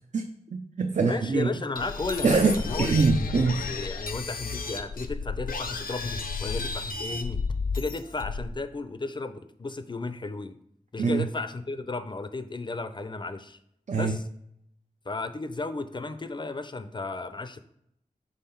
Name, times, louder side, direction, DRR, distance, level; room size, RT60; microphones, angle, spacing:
voice 1, 0.5-1.5 2.2-3.6 11.0-11.3 13.9-14.2, right 4 dB, 55° right, 4 dB, 0.5 m, -24 dB
voice 2, 1.1-2.4 2.7-3.1 3.7-7.4 7.7-10.6 10.9-13.6 14.0-14.2 15.1-17.6, left 3 dB, 30° left, 11 dB, 0.5 m, -34 dB
sound 1, 1.8-8.6, left 4 dB, 80° left, 0.6 m, -32 dB
5.6 x 3.8 x 5.7 m, 0.75 s
wide cardioid pair, 95°, 15 cm